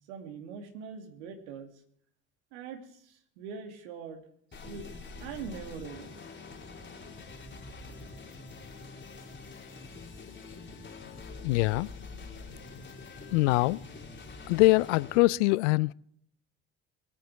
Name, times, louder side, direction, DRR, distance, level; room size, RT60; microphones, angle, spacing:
voice 1, 0.1-1.7 2.5-4.2 4.6-4.9 5.2-6.1, right 6 dB, 75° right, 2.5 m, -42 dB
sound 1, 4.5-15.2, left 3 dB, 30° left, 4.4 m, -45 dB
voice 2, 11.4-11.9 13.3-13.8 14.5-15.9, left 21 dB, 75° left, 0.5 m, -23 dB
22.5 x 9.1 x 4.6 m
hypercardioid pair, 60°, 35 cm